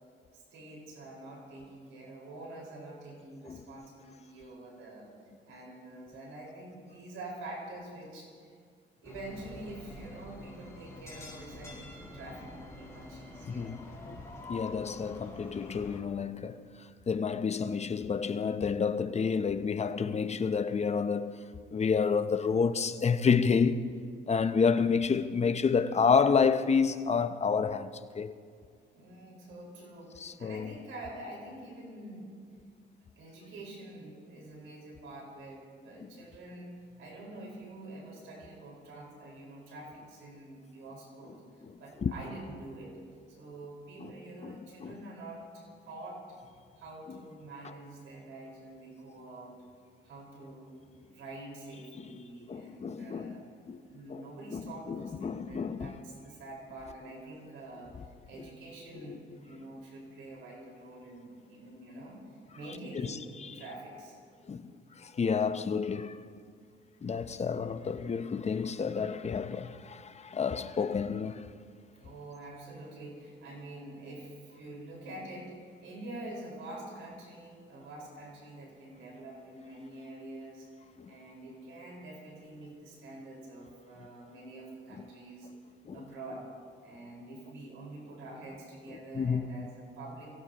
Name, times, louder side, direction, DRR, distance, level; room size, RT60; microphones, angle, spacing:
voice 1, 0.3-5.1 5.5-8.3 9.0-13.7 28.9-32.3 33.2-42.9 43.3-46.2 46.8-49.5 50.0-53.4 53.8-57.9 58.3-62.2 62.5-63.2 63.5-64.2 72.0-80.7 81.1-85.5 85.9-86.5 86.8-90.4, right 2 dB, 85° right, 4.9 m, -46 dB
sound 1, 9.0-16.0, left 2 dB, 15° left, 4.1 m, -47 dB
voice 2, 13.5-14.2 14.5-21.4 21.7-23.9 24.3-28.3 30.2-30.7 36.0-36.1 41.7-42.1 44.0-44.1 44.4-44.9 52.5-53.4 53.7-53.8 54.1-54.2 54.5-55.9 58.9-59.2 62.9-63.6 64.5-64.7 65.0-66.2 67.0-71.5 81.0-81.1 85.9-86.0 88.9-89.7, left 5 dB, 35° left, 0.7 m, -30 dB
23.5 x 16.5 x 3.0 m
cardioid pair, 90°, 20 cm